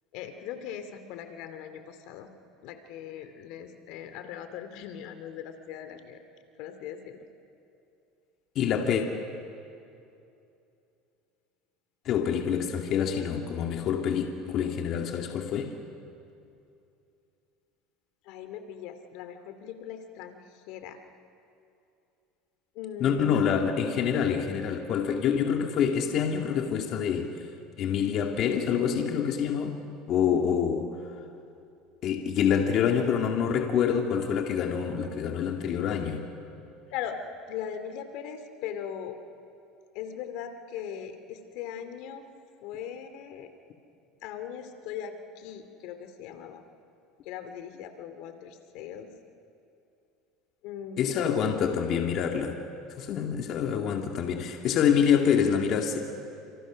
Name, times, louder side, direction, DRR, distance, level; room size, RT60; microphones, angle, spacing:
voice 1, 0.1-2.3 2.6-6.2 6.6-7.3 18.2-21.0 22.7-23.6 36.9-37.2 37.5-39.2 39.9-42.2 42.6-43.5 44.2-46.6 47.2-49.1 50.6-51.3, left 9 dB, 70° left, 8 dB, 2.5 m, -39 dB
voice 2, 8.6-9.1 12.1-15.7 23.0-27.4 27.8-29.8 30.1-30.9 32.0-36.3 51.0-52.6 52.9-56.1, left 7 dB, 50° left, 2 dB, 2.2 m, -26 dB
29.5 x 27.5 x 6.4 m, 2.7 s
supercardioid pair, 110°, 0 cm